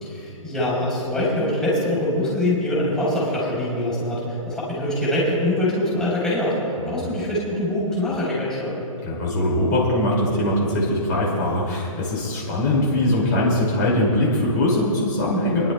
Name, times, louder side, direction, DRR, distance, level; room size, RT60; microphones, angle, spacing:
voice 1, 0.0-6.6 6.8-8.7, left 1 dB, 5° left, -8 dB, 3.3 m, -24 dB
voice 2, 9.0-15.7, left 1 dB, 35° left, -5 dB, 2.3 m, -21 dB
27.5 x 11.0 x 2.2 m, 2.9 s
hypercardioid pair, 165°, 17 cm